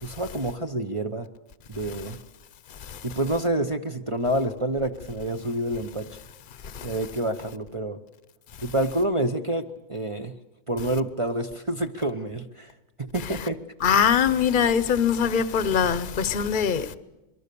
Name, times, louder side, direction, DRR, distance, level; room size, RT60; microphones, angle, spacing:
voice 1, 0.0-1.3 1.7-2.2 3.0-6.2 6.8-8.0 8.6-10.3 10.7-12.7 13.0-13.6, right 1 dB, 30° right, 0.8 m, -28 dB
voice 2, 13.8-16.9, left 7 dB, 40° left, 1.0 m, -22 dB
26.0 x 23.0 x 6.9 m
omnidirectional pair, 1.4 m